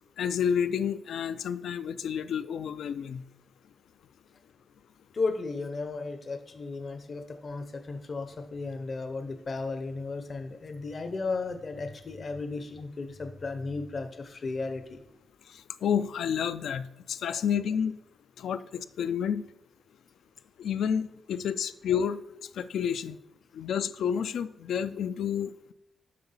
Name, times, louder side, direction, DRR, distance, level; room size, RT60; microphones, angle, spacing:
voice 1, 0.2-3.2 15.8-18.0 18.4-19.5 20.6-22.2 22.6-23.2 23.5-25.7, left 8 dB, 80° left, 13 dB, 0.4 m, -30 dB
voice 2, 5.1-15.0 17.4-17.5, left 3 dB, 40° left, 8 dB, 0.6 m, -35 dB
7.6 x 5.9 x 5.6 m, 0.88 s
wide cardioid pair, 135°, 0 cm